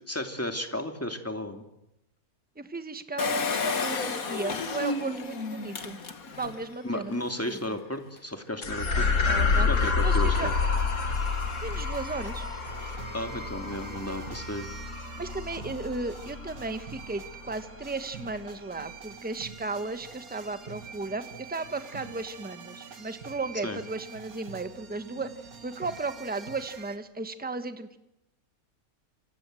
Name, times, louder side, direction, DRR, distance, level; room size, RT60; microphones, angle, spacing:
voice 1, 0.1-1.6 6.8-9.1 9.7-10.5 13.1-14.7 23.6-23.8, left 1 dB, 10° left, 5 dB, 2.7 m, -33 dB
voice 2, 2.6-6.0 6.4-7.8 8.8-9.7 10.0-10.5 11.6-12.5 15.2-25.3 25.6-28.0, right 3 dB, 5° right, 10 dB, 1.3 m, -35 dB
Engine, 3.2-6.6 7.1-7.2 7.4-7.5, left 4 dB, 75° left, 2.3 m, -31 dB
sound 1, 8.6-17.2, left 4 dB, 60° left, 2.1 m, -28 dB
sound 2, 9.8-27.0, right 6 dB, 80° right, 2.5 m, -46 dB
28.5 x 25.0 x 7.8 m, 0.86 s
omnidirectional pair, 1.5 m